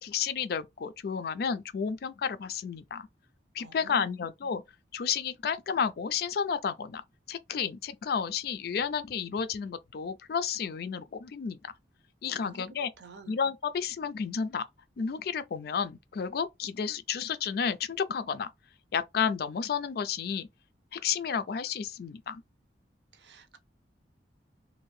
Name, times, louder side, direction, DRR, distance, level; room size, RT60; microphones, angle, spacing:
voice 1, 0.0-3.1 3.5-4.6 4.9-7.0 7.3-11.7 12.2-12.9 13.3-14.6 15.0-18.5 18.9-20.5 20.9-22.4, left 6 dB, 60° left, 0.4 m, -31 dB
voice 2, 3.6-4.3 12.4-12.6 13.0-13.3 23.1-23.6, right 4 dB, 75° right, 0.6 m, -51 dB
2.7 x 2.5 x 3.1 m
head